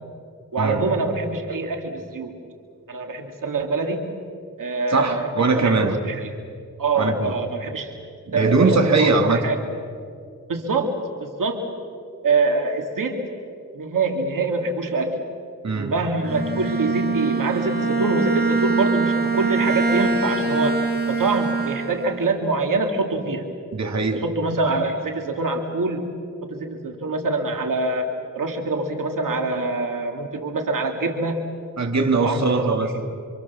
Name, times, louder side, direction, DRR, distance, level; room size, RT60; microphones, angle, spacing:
voice 1, 0.5-2.4 2.9-4.1 4.6-5.8 6.1-6.3 6.8-7.9 8.3-9.6 10.5-11.7 12.2-13.3 13.7-15.2 15.7-23.5 24.2-26.2 26.5-28.1 28.3-31.4 31.8-31.9 32.2-32.8, right 3 dB, 80° right, 3 dB, 2.4 m, -25 dB
voice 2, 4.9-6.0 7.0-7.3 8.3-9.4 15.6-15.9 23.7-24.2 31.8-33.1, right 3 dB, 55° right, 3 dB, 2.7 m, -21 dB
Bowed string instrument, 16.2-22.3, right 3 dB, 30° right, 2.6 m, -23 dB
28.0 x 26.0 x 7.3 m, 2.3 s
wide cardioid pair, 100°, 32 cm